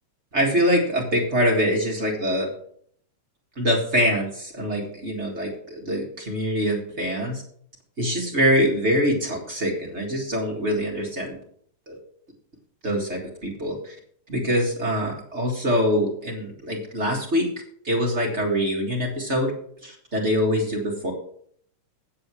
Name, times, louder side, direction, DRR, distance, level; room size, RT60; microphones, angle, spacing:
voice 1, 0.3-2.5 3.6-7.4 8.0-11.4 11.9-12.0 12.8-14.0 14.3-17.5 17.8-19.5 19.8-21.1, equal, 30° right, -1 dB, 1.7 m, -24 dB
8.7 x 7.6 x 6.1 m, 0.63 s
omnidirectional pair, 3.3 m